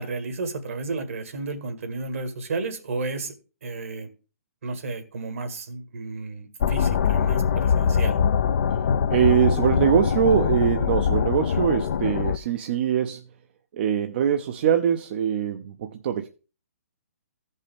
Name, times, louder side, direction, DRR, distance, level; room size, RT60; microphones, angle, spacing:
voice 1, 0.0-3.3 3.6-4.1 4.6-8.2, right 3 dB, 70° right, 1.9 m, -32 dB
sound 1, 6.6-12.4, left 7 dB, 55° left, 0.5 m, -23 dB
voice 2, 9.1-13.2 13.7-16.3, right 9 dB, 45° right, 0.7 m, -23 dB
15.0 x 5.4 x 3.4 m
hypercardioid pair, 140°, 8 cm